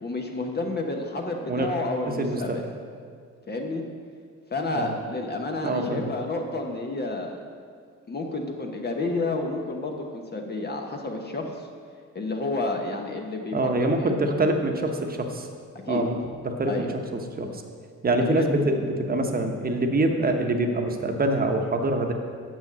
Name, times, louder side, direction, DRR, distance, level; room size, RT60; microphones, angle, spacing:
voice 1, 0.0-2.6 3.5-3.9 4.5-7.4 8.1-11.7 12.1-14.1 15.8-16.0 16.7-16.9 18.2-18.5, left 2 dB, 35° left, 2 dB, 1.1 m, -30 dB
voice 2, 2.1-2.7 4.7-4.9 5.6-6.1 13.5-15.5 15.9-16.2 16.4-17.6 18.0-22.1, right 2 dB, 30° right, 4 dB, 1.1 m, -25 dB
6.9 x 6.2 x 7.5 m, 2.1 s
cardioid pair, 90°, 30 cm